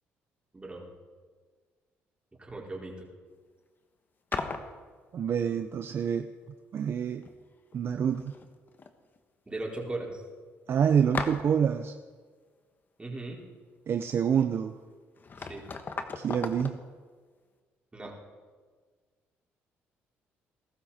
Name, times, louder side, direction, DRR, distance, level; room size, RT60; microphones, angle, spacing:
voice 1, 0.5-0.9 2.4-3.1 9.5-10.2 13.0-13.4 15.4-15.6 17.9-18.2, right 2 dB, 20° right, -2 dB, 4.5 m, -38 dB
sound 1, 4.3-4.8 6.8-6.9 7.2-7.8 8.1-8.9 9.2-9.3 9.8-9.9 11.1-11.7 14.7-14.8 15.2-16.8, left 4 dB, 40° left, 1.4 m, -37 dB
voice 2, 5.1-6.3 6.7-7.3 7.7-8.3 10.7-12.0 13.9-14.8 16.2-16.8, right 8 dB, 55° right, 8 dB, 0.7 m, -27 dB
21.0 x 12.5 x 4.3 m, 1.5 s
supercardioid pair, 70°, 5 cm